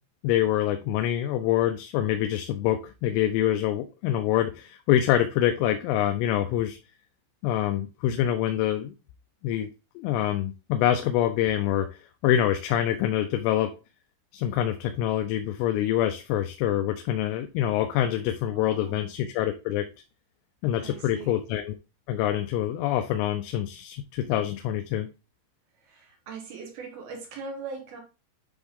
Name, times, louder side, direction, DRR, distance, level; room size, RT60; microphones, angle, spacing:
voice 1, 0.2-6.8 7.4-8.9 9.4-9.7 10.0-11.9 12.2-13.7 14.3-19.9 20.6-21.8 22.1-25.1, left 12 dB, 85° left, 3.2 m, -25 dB
voice 2, 18.5-19.1 20.8-21.4 25.8-28.0, right 4 dB, 65° right, 2.7 m, -40 dB
9.8 x 3.5 x 3.6 m
omnidirectional pair, 5.6 m